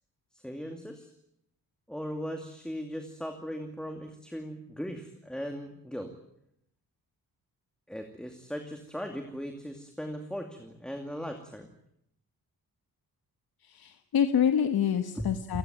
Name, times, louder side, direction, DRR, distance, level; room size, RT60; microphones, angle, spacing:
voice 1, 0.3-1.1 1.9-6.1 7.9-11.7 15.2-15.6, equal, ahead, 4 dB, 2.6 m, -38 dB
voice 2, 13.6-15.6, left 8 dB, 85° left, 8 dB, 1.4 m, -27 dB
29.5 x 17.0 x 9.1 m, 0.77 s
wide cardioid pair, 125°, 36 cm